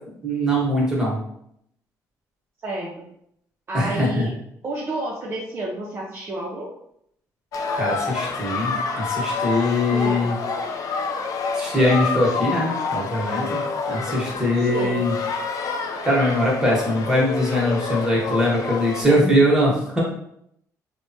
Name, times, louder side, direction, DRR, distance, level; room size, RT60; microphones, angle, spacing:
voice 1, 0.2-1.2 3.7-4.3 7.7-10.3 11.6-13.6 13.9-15.1 16.0-20.0, equal, 10° right, -4 dB, 1.1 m, -21 dB
voice 2, 2.6-2.9 3.7-4.3 4.6-6.7 9.9-10.2 14.6-15.0 19.1-19.2, right 1 dB, 35° right, -4 dB, 0.5 m, -30 dB
sound 1, 7.5-19.0, left 4 dB, 60° left, 0.4 m, -28 dB
3.3 x 2.1 x 2.7 m, 0.72 s
cardioid pair, 110°, 7 cm